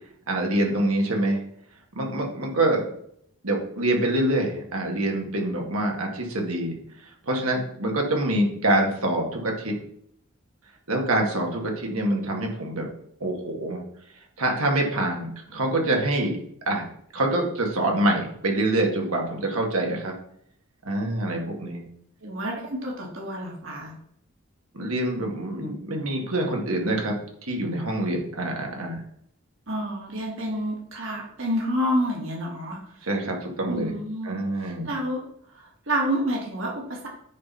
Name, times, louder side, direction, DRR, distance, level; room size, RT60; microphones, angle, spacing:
voice 1, 0.3-1.4 2.0-2.8 3.4-6.8 7.2-9.8 10.9-12.9 13.2-13.8 14.4-16.4 16.7-16.9 17.1-20.1 20.8-21.8 24.7-27.2 27.4-29.0 33.0-33.9 34.2-34.9, right 1 dB, 85° right, 1 dB, 2.1 m, -25 dB
voice 2, 22.2-23.9 29.7-33.1 33.7-35.2 35.5-37.1, equal, 65° right, -1 dB, 2.3 m, -29 dB
9.5 x 4.4 x 5.6 m, 0.70 s
head